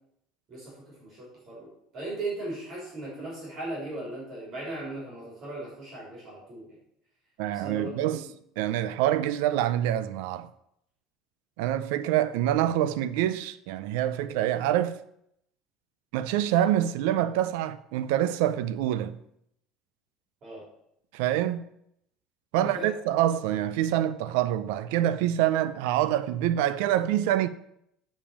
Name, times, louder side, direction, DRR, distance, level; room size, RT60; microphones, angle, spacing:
voice 1, 1.0-6.8 7.5-8.2 20.4-20.6 22.6-22.9, right 2 dB, 30° right, 3.5 m, -38 dB
voice 2, 7.4-8.3 8.6-10.5 11.6-15.0 16.1-19.2 21.1-21.6 22.5-27.5, right 12 dB, 80° right, 0.5 m, -26 dB
7.3 x 5.1 x 7.2 m
cardioid pair, 175°, 0 cm